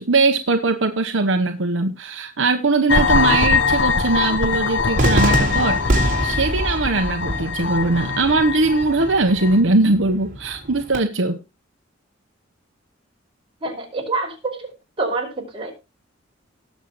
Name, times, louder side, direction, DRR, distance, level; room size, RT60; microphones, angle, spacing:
voice 1, 0.0-11.4, right 3 dB, 70° right, 1.0 m, -20 dB
sound 1, 2.9-9.6, left 5 dB, 65° left, 1.2 m, -22 dB
Cheering / Fireworks, 5.0-11.0, right 1 dB, 45° right, 3.9 m, -25 dB
voice 2, 13.6-14.7 15.0-15.7, right 3 dB, 30° right, 5.2 m, -26 dB
19.0 x 7.4 x 3.1 m
head